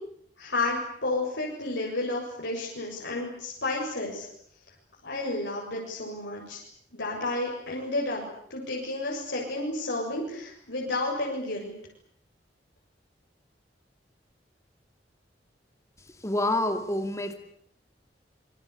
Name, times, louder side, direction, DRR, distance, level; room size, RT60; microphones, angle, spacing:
voice 1, 0.4-4.3 5.0-6.6 6.9-8.2 8.5-11.7, left 2 dB, 90° left, -3 dB, 7.4 m, -31 dB
voice 2, 16.2-17.3, left 1 dB, 15° left, 6 dB, 2.4 m, -27 dB
27.5 x 23.5 x 8.6 m, 0.68 s
head